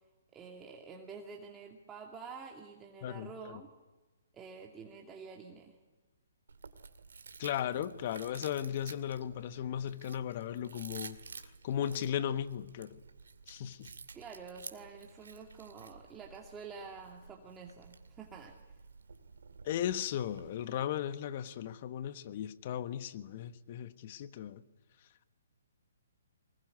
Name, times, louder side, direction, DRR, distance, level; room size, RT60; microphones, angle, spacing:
voice 1, 0.3-3.7 4.3-5.8 14.1-18.6, right 5 dB, 15° right, 2.4 m, -48 dB
voice 2, 3.0-3.6 7.4-11.2 11.6-13.0 13.5-13.9 19.6-24.6, left 10 dB, 45° left, 1.4 m, -36 dB
Chewing mastication, 6.5-20.6, right 5 dB, 75° right, 2.3 m, -52 dB
24.5 x 21.0 x 9.7 m
figure-of-eight pair, 135°, 0 cm